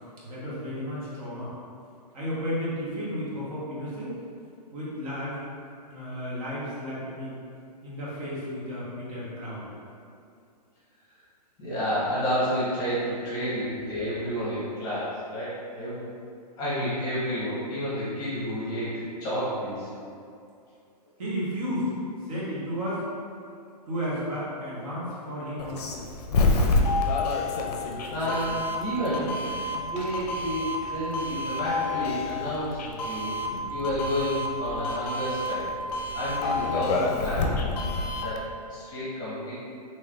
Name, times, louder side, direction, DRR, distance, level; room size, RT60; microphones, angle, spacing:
voice 1, 0.2-1.5 2.1-4.2 4.7-5.4 5.9-7.4 7.8-9.7 21.2-21.9 22.3-23.0 23.9-26.0, equal, 55° right, -8 dB, 1.1 m, -33 dB
voice 2, 11.6-16.1 16.6-19.9 27.8-27.9 28.1-33.3 33.7-35.7 36.1-37.8 38.1-39.5, equal, 20° left, -10 dB, 1.0 m, -30 dB
Doorbell, 25.6-38.4, left 2 dB, 70° left, 0.5 m, -28 dB
3.2 x 2.9 x 2.4 m, 2.4 s
hypercardioid pair, 145°, 21 cm